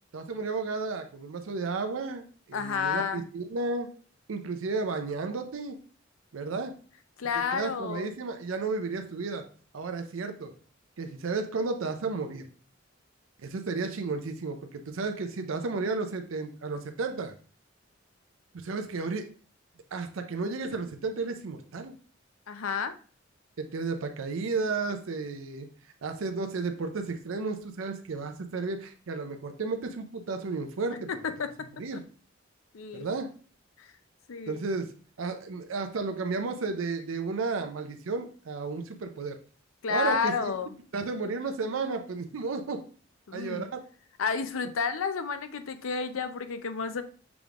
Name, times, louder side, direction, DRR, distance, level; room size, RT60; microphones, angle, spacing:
voice 1, 0.1-3.9 4.3-5.8 6.3-6.7 7.3-9.4 9.7-10.5 11.0-12.5 13.4-17.3 18.5-19.3 19.9-21.9 23.6-25.7 26.0-31.1 31.8-32.0 32.9-33.3 34.5-34.9 35.2-39.4 39.9-40.5 40.9-42.8 43.3-43.8, right 4 dB, 85° right, 6 dB, 0.5 m, -33 dB
voice 2, 2.5-3.3 7.2-8.1 22.5-23.0 31.1-31.5 32.7-33.1 33.8-33.9 34.3-34.6 39.8-40.7 43.3-43.7 44.2-47.0, left 5 dB, 90° left, 10 dB, 0.5 m, -31 dB
6.0 x 3.5 x 2.4 m, 0.40 s
head